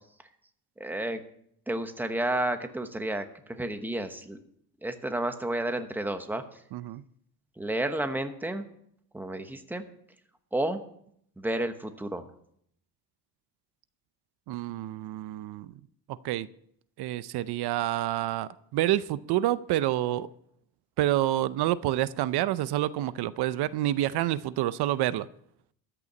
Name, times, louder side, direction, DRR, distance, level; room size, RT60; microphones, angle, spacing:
voice 1, 0.8-1.2 1.7-4.4 4.8-6.4 7.6-8.6 9.1-9.8 10.5-10.8 11.4-12.3, right 1 dB, 5° right, 8 dB, 1.0 m, -31 dB
voice 2, 6.7-7.0 14.5-15.7 16.1-16.5 17.0-20.3 21.0-25.3, right 14 dB, 75° right, 16 dB, 0.6 m, -28 dB
13.5 x 6.9 x 8.6 m, 0.69 s
cardioid pair, 145°, 39 cm